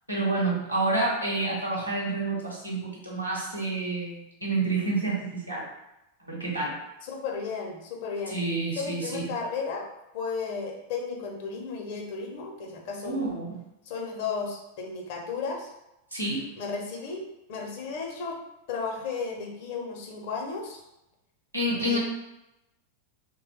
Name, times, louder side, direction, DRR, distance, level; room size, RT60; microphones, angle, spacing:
voice 1, 0.1-5.6 6.3-6.7 8.3-9.3 13.0-13.6 16.1-16.4 21.5-22.0, right 2 dB, 85° right, -4 dB, 0.9 m, -28 dB
voice 2, 7.0-8.4 8.7-9.9 10.1-13.3 13.8-15.7 16.6-17.2 17.5-18.4 18.7-20.8 21.8-22.0, left 4 dB, 50° left, 1 dB, 0.6 m, -34 dB
2.9 x 2.1 x 3.2 m, 0.90 s
figure-of-eight pair, 90°, 0 cm